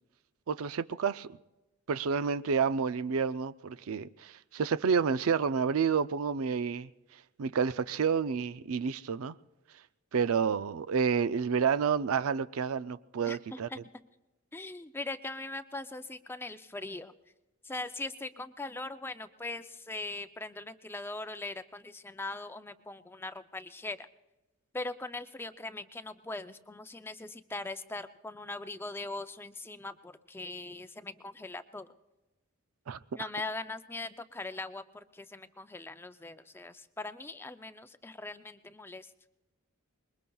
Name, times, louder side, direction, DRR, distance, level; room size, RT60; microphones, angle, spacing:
voice 1, 0.5-1.4 1.9-6.9 7.4-9.4 10.1-13.7 32.9-33.0, right 6 dB, 80° right, 0.4 m, -29 dB
voice 2, 13.2-13.8 14.5-17.1 17.6-24.1 24.7-31.9 33.1-39.1, left 2 dB, 10° left, 0.4 m, -40 dB
25.0 x 21.5 x 2.3 m
head